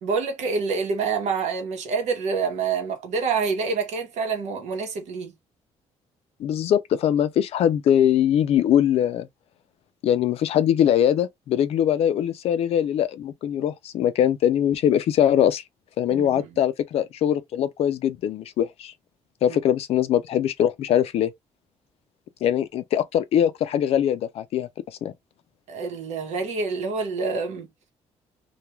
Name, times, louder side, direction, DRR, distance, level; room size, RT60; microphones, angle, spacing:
voice 1, 0.0-5.3 16.1-16.6 19.5-19.6 25.7-27.7, right 5 dB, 75° right, 0.9 m, -27 dB
voice 2, 6.4-9.3 10.0-15.6 16.0-18.9 19.4-21.3 22.4-24.7 25.0-25.1, left 10 dB, 60° left, 0.4 m, -22 dB
2.3 x 2.2 x 3.0 m
cardioid pair, 150°, 12 cm